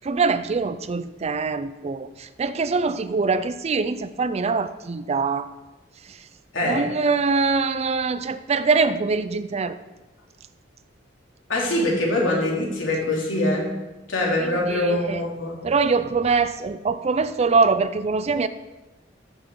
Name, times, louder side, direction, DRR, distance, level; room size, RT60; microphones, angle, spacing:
voice 1, 0.0-5.5 6.6-9.8 14.7-15.2 15.6-18.5, right 4 dB, 35° right, 13 dB, 0.4 m, -23 dB
voice 2, 6.5-6.9 11.5-13.7 14.1-15.6, left 1 dB, 85° left, -3 dB, 2.8 m, -23 dB
14.0 x 6.2 x 3.7 m, 1.1 s
head